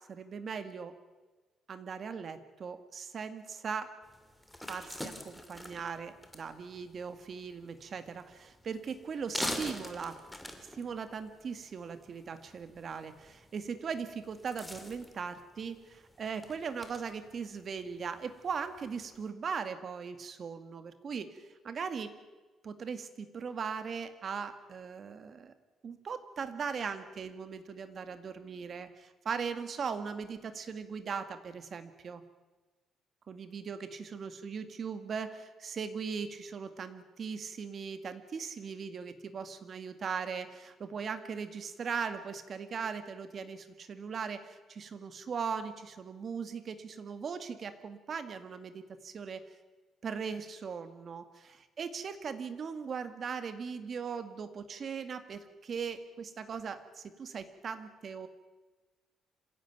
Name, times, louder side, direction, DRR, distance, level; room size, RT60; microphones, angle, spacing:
voice 1, 0.1-0.9 1.7-3.9 4.7-10.2 10.8-22.1 22.6-25.5 25.8-32.2 33.3-49.4 50.0-58.3, right 6 dB, 40° right, 10 dB, 2.0 m, -39 dB
sound 1, 4.0-19.3, left 1 dB, 5° left, 2.6 m, -45 dB
26.5 x 16.5 x 9.4 m, 1.3 s
cardioid pair, 150°, 0 cm